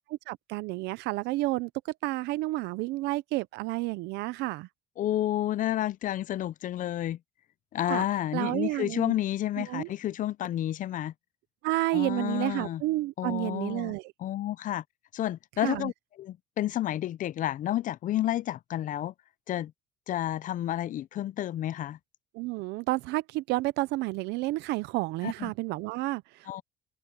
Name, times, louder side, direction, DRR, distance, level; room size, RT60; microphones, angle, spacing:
voice 1, 0.1-4.7 7.9-8.1 8.3-9.1 9.6-9.9 11.6-14.1 15.6-15.9 22.3-26.6, right 19 dB, 90° right, 0.6 m, -30 dB
voice 2, 5.0-7.2 7.7-11.1 11.9-12.8 13.2-13.9 14.2-14.8 15.1-15.9 16.2-19.1 19.5-19.7 20.1-22.0 25.2-25.5 26.5-26.6, left 13 dB, 50° left, 0.5 m, -30 dB
open air
cardioid pair, 110°, 17 cm